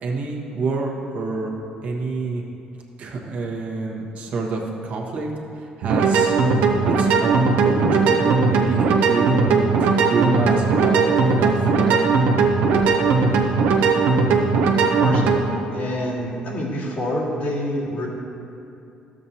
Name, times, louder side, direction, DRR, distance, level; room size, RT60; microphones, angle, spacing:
voice 1, 0.0-1.5 1.8-2.4 3.0-5.3 5.6-6.4 6.8-11.9, right 3 dB, 55° right, -1 dB, 1.2 m, -27 dB
sound 1, 5.8-15.4, right 4 dB, 85° right, 0.7 m, -18 dB
voice 2, 15.7-18.1, left 1 dB, 70° left, -6 dB, 2.1 m, -26 dB
12.0 x 7.5 x 2.8 m, 2.7 s
cardioid pair, 105°, 3 cm